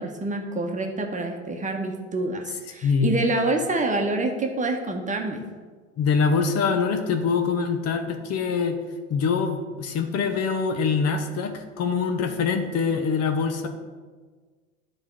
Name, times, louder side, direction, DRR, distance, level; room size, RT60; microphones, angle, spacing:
voice 1, 0.0-5.4, right 2 dB, 20° right, 3 dB, 1.1 m, -27 dB
voice 2, 2.8-3.1 6.0-8.8 9.1-13.7, left 5 dB, 40° left, 7 dB, 0.9 m, -24 dB
11.0 x 4.4 x 4.7 m, 1.4 s
hypercardioid pair, 85°, 37 cm